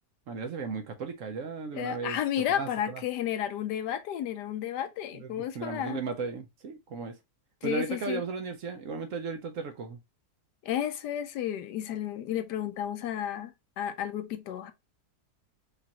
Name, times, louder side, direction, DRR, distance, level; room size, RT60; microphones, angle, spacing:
voice 1, 0.3-2.2 2.6-3.0 5.1-7.2 7.6-10.0, right 4 dB, 65° right, 0.9 m, -35 dB
voice 2, 1.7-6.0 7.6-8.2 10.6-14.7, left 10 dB, 85° left, 1.2 m, -32 dB
5.1 x 2.5 x 2.9 m
omnidirectional pair, 1.8 m